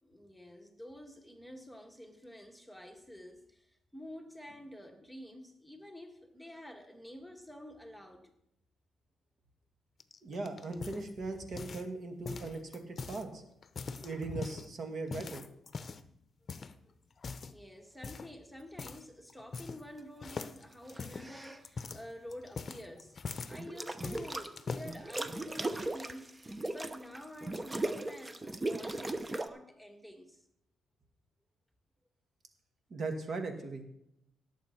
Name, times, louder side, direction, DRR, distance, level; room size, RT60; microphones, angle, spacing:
voice 1, 0.0-8.3 16.8-16.9 17.5-23.2 23.5-26.3 26.7-30.4, left 1 dB, ahead, 4 dB, 1.6 m, -49 dB
sound 1, 10.0-11.9 12.2-13.2 13.6-14.7 15.1-16.1 16.5-16.7 17.2-17.6 18.0-18.3 18.8-19.0 19.3-19.9 20.2-23.6 24.0-24.9 25.6-26.1, left 4 dB, 40° left, 0.8 m, -42 dB
voice 2, 10.2-13.4 14.0-15.4 32.9-33.8, right 3 dB, 50° right, 5 dB, 2.0 m, -39 dB
sound 2, 20.9-21.6 23.5-24.5 24.8-29.5, right 2 dB, 20° right, 0.9 m, -38 dB
17.5 x 7.4 x 4.5 m, 0.79 s
cardioid pair, 90°, 0 cm